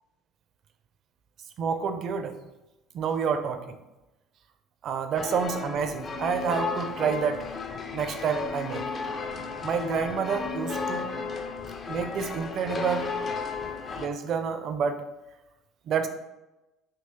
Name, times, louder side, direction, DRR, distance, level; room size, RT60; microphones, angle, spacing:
voice 1, 1.6-2.4 2.9-3.8 4.8-7.5 7.9-8.8 9.6-11.1 11.9-13.1 13.9-15.0 15.9-16.1, right 6 dB, 50° right, 8 dB, 0.4 m, -28 dB
sound 1, 5.1-14.1, left 4 dB, 35° left, 0.4 m, -34 dB
5.1 x 3.0 x 2.9 m, 1.0 s
figure-of-eight pair, 60°, 0 cm